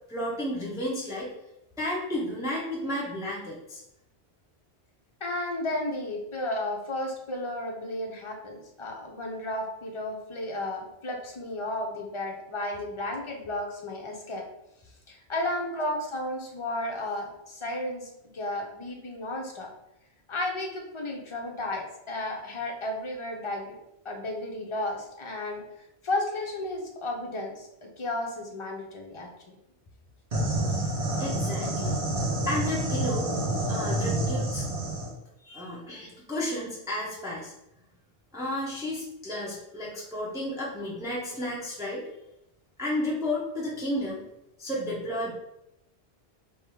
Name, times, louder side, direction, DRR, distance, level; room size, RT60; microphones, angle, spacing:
voice 1, 0.1-1.3 1.8-3.8 31.2-32.0 32.5-33.3 33.7-34.6 35.4-37.5 38.3-42.3 42.8-44.2 44.6-45.3, left 1 dB, 5° right, -5 dB, 0.8 m, -32 dB
voice 2, 5.2-14.4 15.1-19.7 20.3-23.8 24.0-25.6 26.0-29.6, left 1 dB, 30° left, 0 dB, 0.7 m, -33 dB
sound 1, 30.3-35.1, right 1 dB, 85° right, 1.7 m, -28 dB
3.6 x 3.1 x 4.7 m, 0.85 s
omnidirectional pair, 1.1 m